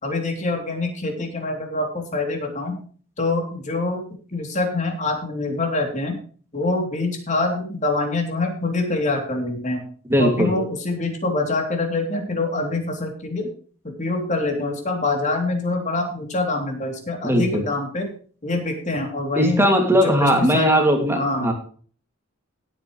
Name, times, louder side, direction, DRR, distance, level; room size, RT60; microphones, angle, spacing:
voice 1, 0.0-2.8 3.2-4.0 4.3-6.2 6.5-9.8 10.2-13.5 13.8-18.1 18.4-19.6 19.9-20.7 21.1-21.5, left 2 dB, 35° left, 3 dB, 3.3 m, -25 dB
voice 2, 10.0-10.5 17.2-17.6 19.3-21.5, equal, 10° right, 3 dB, 2.5 m, -19 dB
17.0 x 8.9 x 3.3 m, 0.43 s
head